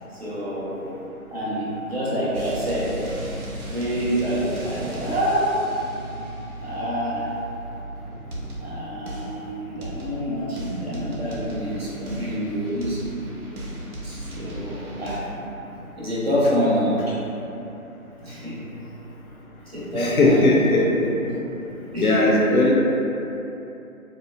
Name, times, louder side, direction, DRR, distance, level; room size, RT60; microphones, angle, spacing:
voice 1, 0.1-0.9 1.3-3.0 3.7-5.6 6.6-7.3 8.6-13.0 14.0-15.3 15.7-17.1 18.2-18.6 19.7-20.5 21.2-21.3 21.9-22.3, equal, 45° right, -8 dB, 0.7 m, -27 dB
sound 1, 2.3-8.8 9.1-9.4 9.8-10.3 10.6-15.2, right 1 dB, 85° right, 0.6 m, -36 dB
voice 2, 19.9-20.9 22.0-22.7, left 2 dB, 75° left, -3 dB, 0.5 m, -18 dB
2.8 x 2.2 x 2.2 m, 2.9 s
figure-of-eight pair, 165°, 43 cm